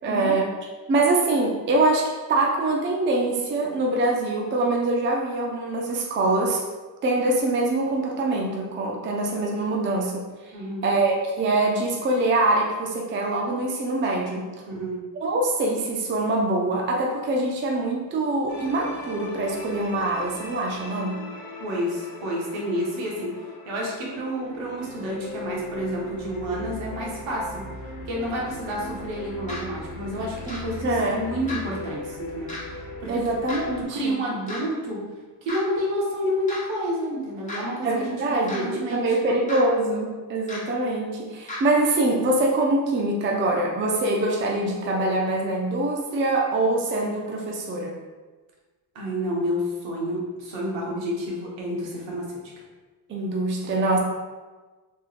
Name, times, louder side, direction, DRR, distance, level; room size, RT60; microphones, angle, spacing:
voice 1, 0.0-0.5 0.9-6.6 7.0-10.2 10.8-14.5 15.2-21.2 30.8-31.2 33.1-34.2 37.8-48.0 53.1-54.0, right 2 dB, 25° right, 0 dB, 0.4 m, -24 dB
voice 2, 10.5-10.8 14.7-15.0 21.6-23.3 23.6-27.6 28.0-33.3 33.8-35.0 35.4-39.2 48.9-52.4, equal, 65° right, -4 dB, 1.3 m, -29 dB
sound 1, 18.5-33.8, left 1 dB, 40° left, 1.0 m, -39 dB
sound 2, 29.5-29.6 30.5-30.6 31.5-31.6 32.5-32.6 33.5-33.6 34.5-34.6 35.5-35.6 36.5-36.6 37.5-37.6 38.5-38.6 39.5-39.6 40.5-40.6 41.5-41.6, left 2 dB, 15° left, 1.2 m, -33 dB
3.5 x 3.1 x 2.4 m, 1.3 s
supercardioid pair, 90°, 50 cm